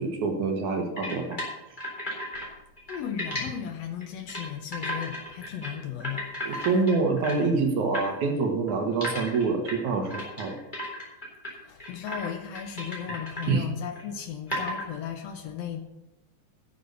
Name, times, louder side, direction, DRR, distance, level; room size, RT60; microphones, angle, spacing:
voice 1, 0.0-1.4 6.5-10.5 13.5-13.7, right 4 dB, 65° right, 3 dB, 2.5 m, -26 dB
sound 1, 1.0-2.5 2.8-3.4 4.0-4.5 4.7-5.7 6.0-7.5 7.9-8.1 8.7-11.5 11.8-12.3 12.5-13.5 13.9-14.0 14.5-14.9, equal, 15° left, 3.5 m, -34 dB
voice 2, 2.9-6.3 11.5-15.8, left 9 dB, 85° left, 6 dB, 1.4 m, -36 dB
11.5 x 6.9 x 6.7 m, 0.97 s
omnidirectional pair, 4.0 m